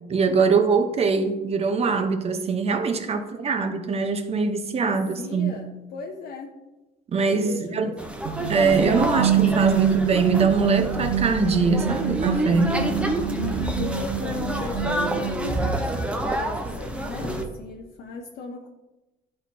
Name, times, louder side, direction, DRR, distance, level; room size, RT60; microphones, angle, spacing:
voice 1, 0.1-5.5 7.1-7.9 8.5-12.8, right 4 dB, 35° right, 7 dB, 0.8 m, -23 dB
voice 2, 4.8-6.5 7.3-8.0 13.3-18.7, left 4 dB, 65° left, 1 dB, 0.7 m, -38 dB
sound 1, 8.0-17.4, right 1 dB, 5° right, 0.8 m, -28 dB
sound 2, 8.2-16.0, right 9 dB, 85° right, 0.5 m, -26 dB
10.5 x 4.3 x 2.8 m, 1.1 s
cardioid pair, 110°, 17 cm